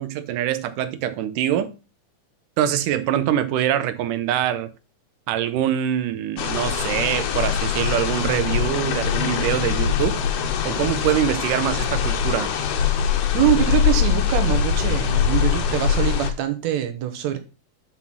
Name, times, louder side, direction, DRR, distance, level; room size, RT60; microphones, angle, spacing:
voice 1, 0.0-1.7 2.6-4.7 5.3-10.2 10.6-12.5, right 11 dB, 90° right, 2.4 m, -24 dB
sound 1, 6.4-16.3, left 8 dB, 90° left, 2.5 m, -22 dB
voice 2, 13.3-17.4, right 11 dB, 70° right, 2.2 m, -23 dB
5.9 x 5.6 x 6.1 m
omnidirectional pair, 3.6 m